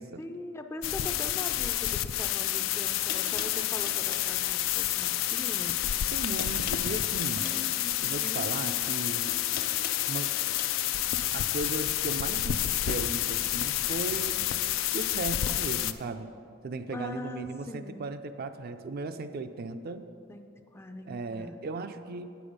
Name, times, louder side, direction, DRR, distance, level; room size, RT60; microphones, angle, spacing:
voice 1, 0.2-5.8 7.3-8.5 16.9-18.1 20.3-21.6, left 2 dB, 15° left, 6 dB, 0.4 m, -42 dB
sound 1, 0.8-15.9, left 13 dB, 85° left, 0.4 m, -29 dB
sound 2, 2.6-2.7 3.1-4.3 5.5-5.8 6.1-7.6 8.8-10.7, left 6 dB, 50° left, 0.8 m, -41 dB
voice 2, 6.1-7.5 8.0-9.3 10.1-10.3 11.3-14.5 14.9-16.3 16.6-20.1 21.1-22.3, right 3 dB, 50° right, 9 dB, 0.4 m, -36 dB
8.6 x 7.0 x 5.1 m, 2.5 s
head